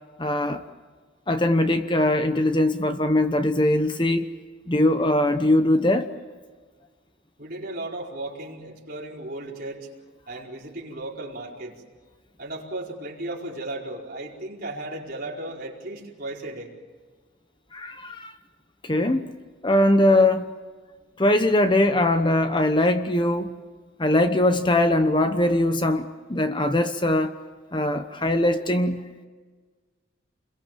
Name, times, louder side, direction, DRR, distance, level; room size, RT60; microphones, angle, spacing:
voice 1, 0.2-0.6 1.3-4.3 4.7-6.1 17.7-18.3 18.8-19.2 19.6-20.4 21.2-23.6 24.0-27.3 27.7-29.0, left 1 dB, 25° left, 1.0 m, -21 dB
voice 2, 7.4-9.9 10.3-11.8 12.4-16.7, right 2 dB, 45° right, 4.8 m, -35 dB
29.5 x 22.0 x 7.5 m
head